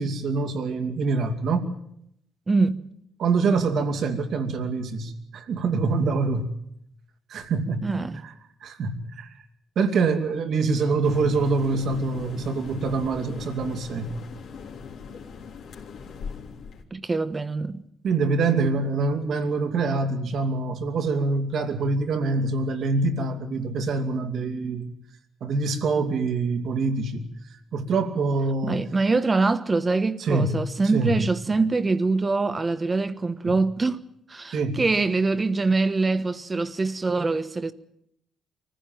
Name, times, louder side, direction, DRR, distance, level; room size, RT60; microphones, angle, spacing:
voice 1, 0.0-1.7 3.2-6.5 7.3-8.3 8.6-9.4 9.8-14.2 18.0-24.9 25.4-27.3 27.7-28.8 30.2-30.6 30.9-31.3 33.4-33.6 34.5-34.8, right 3 dB, 65° right, 2.6 m, -25 dB
voice 2, 2.5-2.8 7.8-8.2 16.9-17.8 28.6-34.0 34.3-37.7, right 3 dB, 25° right, 1.2 m, -24 dB
sound 1, 11.0-16.8, left 6 dB, 75° left, 3.3 m, -40 dB
24.0 x 15.0 x 9.1 m
cardioid pair, 90°, 0 cm